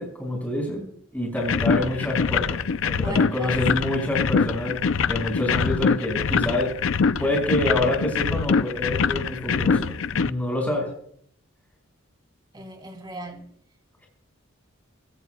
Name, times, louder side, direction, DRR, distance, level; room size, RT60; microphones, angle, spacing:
voice 1, 0.0-2.6 2.8-4.7 5.1-6.7 7.2-10.9, left 1 dB, 10° left, 5.5 m, -27 dB
sound 1, 1.4-10.3, left 5 dB, 70° left, 0.5 m, -24 dB
voice 2, 3.0-3.6 12.5-13.4, right 1 dB, 20° right, 2.9 m, -36 dB
23.0 x 16.0 x 2.3 m
head